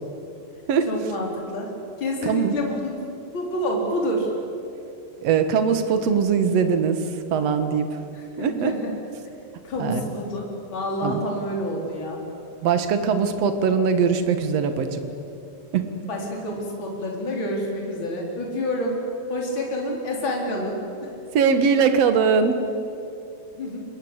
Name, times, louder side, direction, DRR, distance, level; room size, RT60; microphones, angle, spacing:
voice 1, 0.9-3.0 3.3-4.3 8.1-8.9 9.6-12.2 16.1-19.0 19.3-21.1 23.5-23.8, left 1 dB, 30° left, -1 dB, 4.7 m, -28 dB
voice 2, 2.2-2.5 5.2-8.0 8.4-8.8 9.8-10.0 11.0-11.2 12.6-15.1 15.7-15.8 21.3-22.6, right 6 dB, 55° right, 8 dB, 1.9 m, -21 dB
27.5 x 21.5 x 8.2 m, 2.7 s
omnidirectional pair, 4.9 m